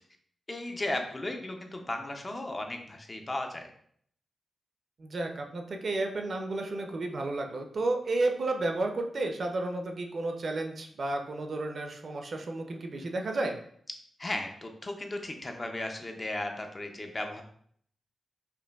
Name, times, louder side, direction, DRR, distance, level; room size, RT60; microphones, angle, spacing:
voice 1, 0.5-3.7 14.2-17.4, left 1 dB, 25° left, 4 dB, 0.4 m, -35 dB
voice 2, 5.0-13.6, right 2 dB, 45° right, 4 dB, 0.4 m, -32 dB
5.0 x 2.5 x 2.2 m, 0.63 s
wide cardioid pair, 170°, 0 cm